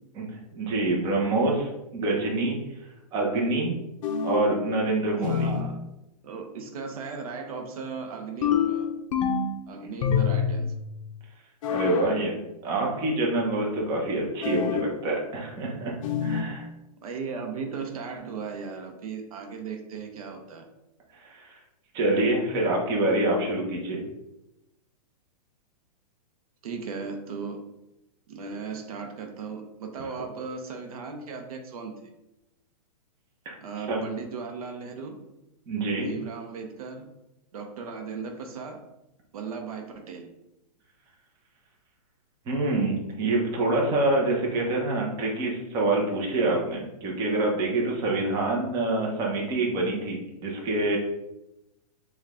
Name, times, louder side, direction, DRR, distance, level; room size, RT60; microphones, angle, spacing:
voice 1, 0.5-2.6 3.1-3.8 4.2-5.5 11.7-15.9 16.2-16.7 21.2-21.6 21.9-24.0 33.5-33.6 33.9-34.0 35.7-36.1 42.5-51.0, right 2 dB, 20° right, -1 dB, 0.7 m, -26 dB
sound 1, 4.0-4.6 5.2-5.7 8.4-9.6 10.0-10.7 11.6-12.1 14.4-14.9 16.0-16.5, left 7 dB, 55° left, 0.5 m, -26 dB
voice 2, 5.2-5.8 6.2-8.9 9.7-10.7 17.0-20.6 26.6-27.6 28.3-32.1 33.6-35.2 36.0-37.1 37.5-38.8 39.3-40.3, right 5 dB, 60° right, 4 dB, 0.7 m, -37 dB
4.5 x 2.3 x 3.6 m, 0.92 s
hypercardioid pair, 155°, 21 cm